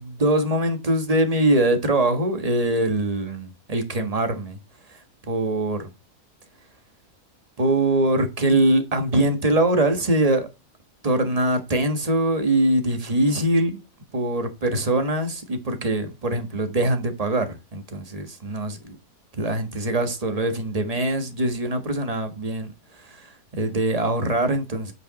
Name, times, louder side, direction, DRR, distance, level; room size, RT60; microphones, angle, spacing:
voice 1, 0.0-4.6 4.9-5.0 5.3-5.9 7.6-10.5 11.0-13.8 14.1-19.0 19.3-22.7 22.9-24.9, right 1 dB, 25° right, 1.5 m, -23 dB
8.5 x 5.3 x 4.1 m
omnidirectional pair, 1.5 m